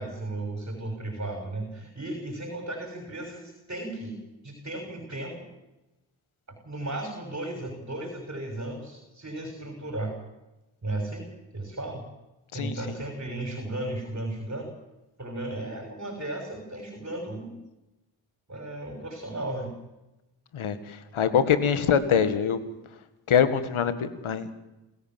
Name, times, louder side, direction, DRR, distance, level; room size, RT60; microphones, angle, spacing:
voice 1, 0.0-4.2 4.4-5.5 6.5-10.2 10.8-12.1 12.5-14.7 15.2-17.6 18.5-19.8 21.2-21.3, right 1 dB, 30° right, 3 dB, 6.2 m, -35 dB
voice 2, 21.1-22.6 23.3-24.5, left 7 dB, 75° left, 12 dB, 2.0 m, -23 dB
27.5 x 14.5 x 7.6 m, 0.99 s
supercardioid pair, 45°, 49 cm